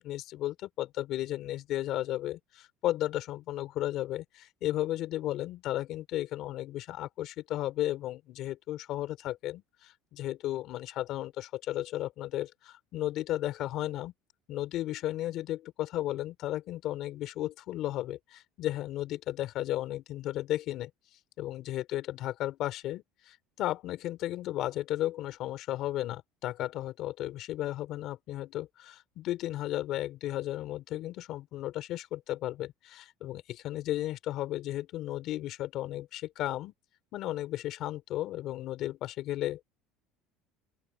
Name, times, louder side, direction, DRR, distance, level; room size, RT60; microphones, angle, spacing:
voice 1, 0.0-14.1 14.5-20.9 21.4-36.7 37.1-39.6, left 14 dB, 50° left, 3.8 m, -34 dB
open air
cardioid pair, 150°, 0 cm